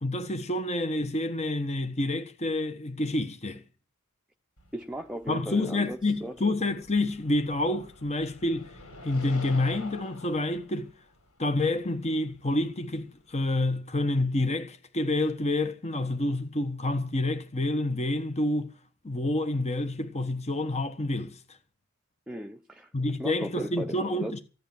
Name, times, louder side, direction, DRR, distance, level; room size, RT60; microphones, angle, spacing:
voice 1, 0.0-3.6 5.3-8.8 9.0-10.9 11.4-18.7 19.0-21.6 22.9-24.4, left 2 dB, 30° left, 1.2 m, -28 dB
sound 1, 4.6-13.4, left 2 dB, 80° left, 4.5 m, -49 dB
voice 2, 4.7-6.4 22.3-24.4, right 1 dB, 5° right, 0.8 m, -37 dB
15.0 x 10.0 x 7.2 m
head